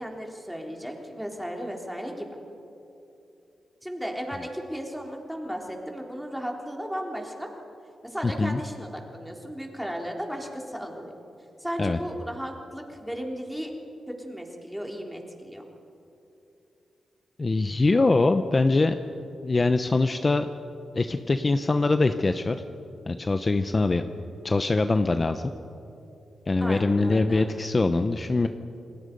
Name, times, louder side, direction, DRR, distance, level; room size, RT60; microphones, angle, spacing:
voice 1, 0.0-2.3 3.8-7.5 8.0-11.1 11.6-13.7 14.1-15.7 26.6-27.5, equal, ahead, 1 dB, 3.8 m, -35 dB
voice 2, 8.2-8.6 11.8-12.0 17.4-19.0 19.4-20.5 20.9-22.5 23.1-24.0 24.4-25.4 26.5-28.5, left 3 dB, 35° left, 8 dB, 0.8 m, -23 dB
29.0 x 19.5 x 5.4 m, 2.8 s
cardioid pair, 65°, 0 cm